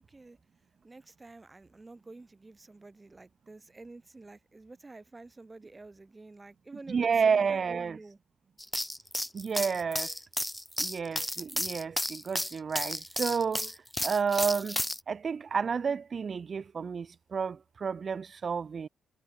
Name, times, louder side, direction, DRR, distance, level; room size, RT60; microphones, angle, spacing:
voice 1, 0.8-8.2, right 3 dB, 25° right, 4.6 m, -49 dB
voice 2, 6.9-8.0 9.3-10.1 10.8-13.7 14.0-14.8 15.1-17.1 17.3-18.9, right 6 dB, 50° right, 0.6 m, -30 dB
sound 1, 8.6-15.0, left 1 dB, 5° left, 0.5 m, -33 dB
supercardioid pair, 60°, 0 cm